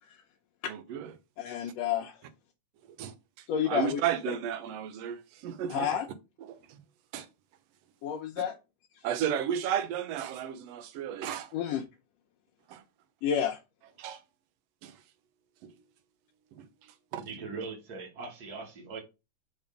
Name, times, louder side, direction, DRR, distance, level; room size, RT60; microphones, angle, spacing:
voice 1, 0.7-1.1 3.0-3.1 3.6-5.9 6.7-6.8 7.1-7.3 9.0-11.5 12.7-12.8 14.0-14.2 14.8-14.9 15.6-15.7 16.5-16.7 17.1-17.3, right 9 dB, 70° right, 1.6 m, -33 dB
voice 2, 1.4-2.2 3.5-4.0 5.7-6.1 8.0-8.5 11.5-11.8 13.2-13.6, left 9 dB, 75° left, 1.7 m, -30 dB
voice 3, 17.1-19.0, right 4 dB, 40° right, 1.7 m, -40 dB
5.5 x 3.5 x 5.1 m
omnidirectional pair, 3.5 m